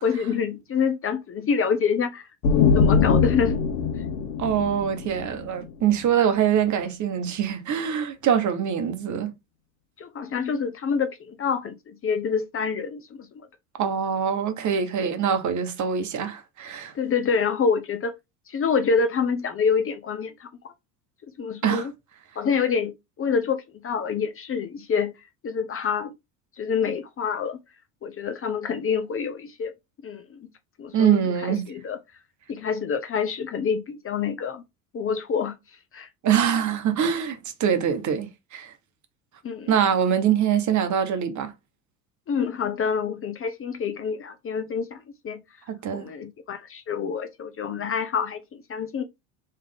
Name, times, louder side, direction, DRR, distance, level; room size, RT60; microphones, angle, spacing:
voice 1, 0.0-3.6 10.0-13.3 16.9-18.1 18.5-20.5 21.4-21.9 22.4-25.1 25.4-26.1 26.6-27.6 28.0-29.7 30.0-30.5 30.8-32.0 32.5-34.6 34.9-35.5 35.9-36.1 39.4-39.7 42.3-45.4 45.9-48.4 48.7-49.0, left 6 dB, 30° left, 0.7 m, -27 dB
sound 1, 2.4-6.0, left 5 dB, 70° left, 1.0 m, -22 dB
voice 2, 4.4-9.3 13.8-16.9 21.6-21.9 30.9-31.7 36.2-38.7 39.7-41.5 45.7-46.1, right 8 dB, 40° right, 1.1 m, -24 dB
3.5 x 3.3 x 3.4 m
hypercardioid pair, 75°, 45 cm